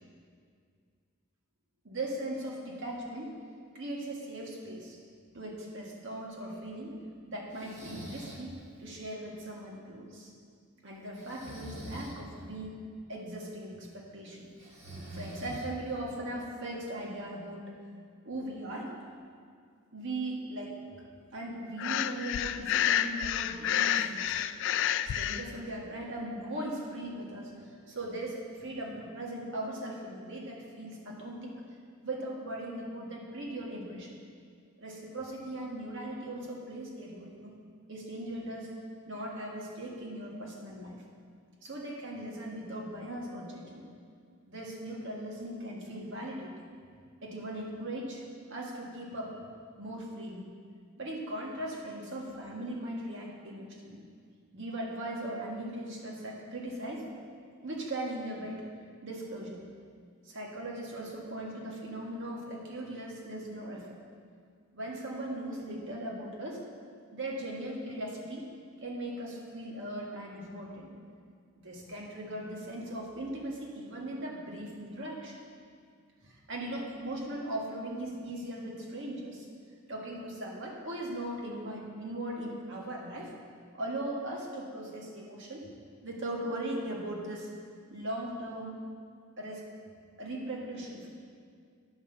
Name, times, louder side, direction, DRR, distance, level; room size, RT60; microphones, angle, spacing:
voice 1, 1.8-3.3 3.7-5.0 5.3-7.0 7.3-10.3 10.8-12.8 13.1-14.5 15.1-17.6 18.2-18.9 19.9-21.1 21.3-24.5 25.0-31.6 32.0-34.1 34.8-37.5 37.9-38.7 39.1-41.0 41.6-43.9 44.4-46.7 47.2-48.2 48.5-49.3 49.8-50.5 51.0-54.0 54.5-57.1 57.6-58.7 59.0-59.6 60.3-63.9 64.7-66.6 67.1-68.5 68.8-70.9 71.6-75.4 76.2-79.5 79.9-83.3 83.7-85.7 86.0-87.5 87.9-88.8 89.4-89.7 90.2-91.1, right 1 dB, 60° right, -2 dB, 1.7 m, -39 dB
Breathing, 7.5-8.5 11.2-12.2 14.6-16.0, equal, 35° right, 1.6 m, -44 dB
Breathing 2, 21.8-25.4, left 10 dB, 60° left, 0.3 m, -29 dB
10.0 x 5.6 x 6.7 m, 2.2 s
head